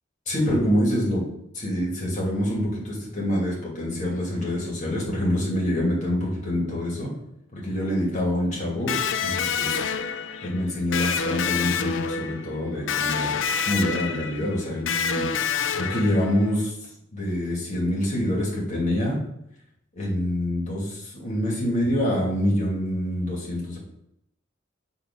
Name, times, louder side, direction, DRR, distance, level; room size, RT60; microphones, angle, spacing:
voice 1, 0.3-1.3 1.5-7.1 7.5-9.8 10.4-13.4 13.7-15.3 15.7-16.7 17.1-19.2 19.9-23.8, left 1 dB, 40° left, -4 dB, 2.6 m, -26 dB
Electric guitar, 8.9-16.6, left 6 dB, 70° left, 0.5 m, -28 dB
7.1 x 3.9 x 5.5 m, 0.78 s
head